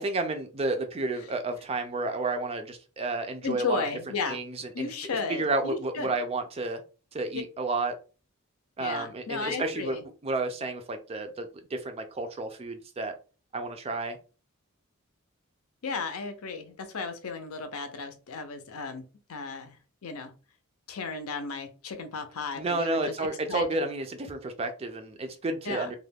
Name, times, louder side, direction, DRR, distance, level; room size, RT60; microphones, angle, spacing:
voice 1, 0.0-3.8 4.3-4.9 5.3-6.8 7.1-7.9 8.8-10.0 10.2-13.1 13.5-14.2 22.5-25.9, right 2 dB, 25° right, 7 dB, 0.3 m, -31 dB
voice 2, 3.4-4.4 4.7-6.1 8.8-10.0 15.8-19.8 20.0-20.3 20.9-23.0 23.5-23.6 25.6-25.9, left 4 dB, 75° left, 7 dB, 0.6 m, -34 dB
2.3 x 2.2 x 3.3 m, 0.35 s
head